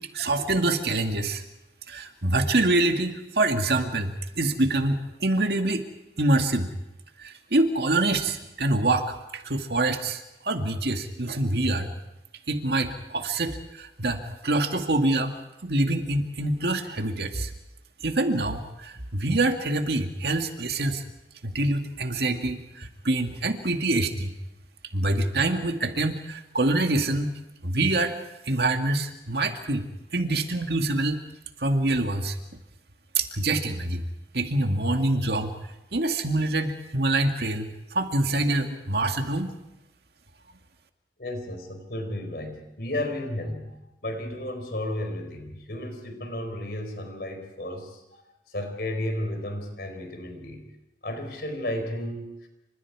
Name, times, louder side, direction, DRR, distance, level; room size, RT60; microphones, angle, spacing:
voice 1, 0.1-1.4 1.9-5.8 6.2-6.7 7.2-11.9 12.5-15.3 15.6-17.5 18.0-21.0 21.4-24.3 24.9-28.1 28.5-31.2 31.6-32.4 33.2-34.1 34.3-35.6 35.9-39.5, right 2 dB, 65° right, 5 dB, 2.0 m, -25 dB
voice 2, 41.2-48.2 48.5-50.7 51.0-52.5, left 1 dB, 60° left, 5 dB, 4.5 m, -33 dB
28.5 x 26.0 x 4.8 m, 0.91 s
head